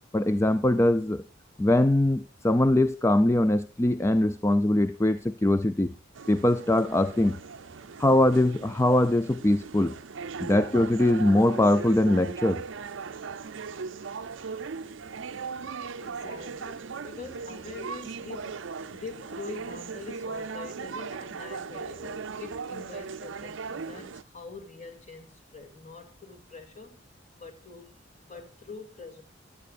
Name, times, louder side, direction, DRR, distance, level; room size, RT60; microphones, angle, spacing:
voice 1, 0.1-1.2 1.6-5.9 6.3-7.4 8.0-10.0 10.4-12.6, left 1 dB, 15° left, 0.4 m, -22 dB
sound 1, 6.2-24.2, right 5 dB, 75° right, 0.5 m, -38 dB
voice 2, 16.0-18.6 18.9-27.0 27.4-29.2, left 3 dB, 40° left, 2.4 m, -44 dB
15.0 x 11.0 x 2.5 m
head